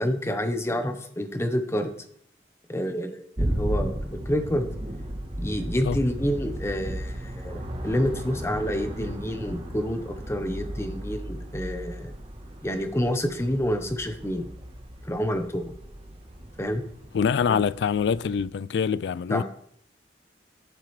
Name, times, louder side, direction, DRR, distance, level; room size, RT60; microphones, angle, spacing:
voice 1, 0.0-1.9 2.7-4.7 5.4-12.1 12.6-14.5 15.1-15.7 16.6-16.8 17.5-17.6 19.3-19.4, equal, 15° left, 1.0 m, -28 dB
sound 1, 3.4-18.4, right 1 dB, 35° right, 1.2 m, -35 dB
voice 2, 17.1-19.4, left 6 dB, 75° left, 0.3 m, -25 dB
13.5 x 7.5 x 3.3 m
head